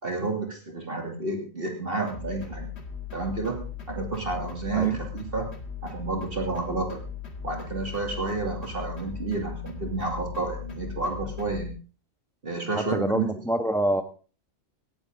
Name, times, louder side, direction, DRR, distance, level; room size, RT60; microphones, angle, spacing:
voice 1, 0.0-2.7 3.1-5.5 5.8-7.0 7.4-11.7 12.4-13.3, right 3 dB, 45° right, 2 dB, 2.9 m, -30 dB
sound 1, 2.1-11.7, left 7 dB, 55° left, 2.1 m, -38 dB
voice 2, 4.7-5.0 12.7-14.0, right 1 dB, ahead, 9 dB, 1.2 m, -26 dB
18.5 x 14.0 x 3.8 m, 0.36 s
omnidirectional pair, 1.4 m